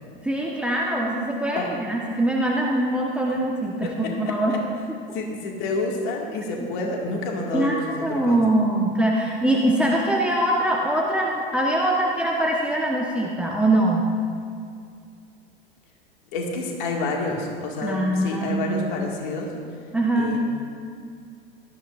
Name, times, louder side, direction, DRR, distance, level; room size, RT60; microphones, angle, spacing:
voice 1, 0.2-4.5 4.9-5.0 7.5-14.0 17.8-18.8 19.9-20.4, right 1 dB, 5° right, -3 dB, 1.2 m, -23 dB
voice 2, 4.3-4.6 5.1-8.4 16.3-19.5 20.2-20.4, left 3 dB, 55° left, 0 dB, 2.0 m, -28 dB
18.0 x 13.5 x 2.5 m, 2.3 s
figure-of-eight pair, 85°, 30 cm